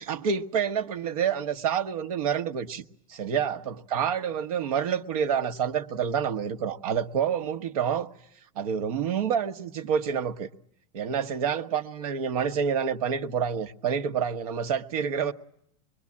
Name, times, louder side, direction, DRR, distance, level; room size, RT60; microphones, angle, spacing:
voice 1, 0.0-8.1 8.5-10.5 10.9-15.3, right 7 dB, 70° right, 1.3 m, -28 dB
25.5 x 22.0 x 8.7 m
supercardioid pair, 150°, 19 cm